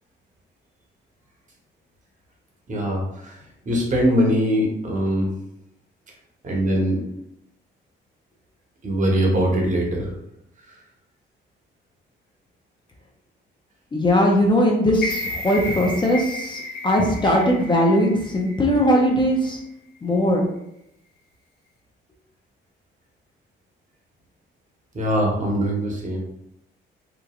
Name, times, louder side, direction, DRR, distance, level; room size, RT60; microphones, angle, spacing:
voice 1, 2.7-3.4 3.6-5.3 6.4-7.1 8.8-10.1 24.9-26.2, equal, 40° right, -2 dB, 1.0 m, -22 dB
voice 2, 13.9-19.6 20.0-20.5, equal, 25° left, -1 dB, 0.5 m, -19 dB
sound 1, 14.9-19.1 19.5-19.6, left 1 dB, 55° left, 0.7 m, -33 dB
3.0 x 2.4 x 2.3 m, 0.79 s
cardioid pair, 90°, 20 cm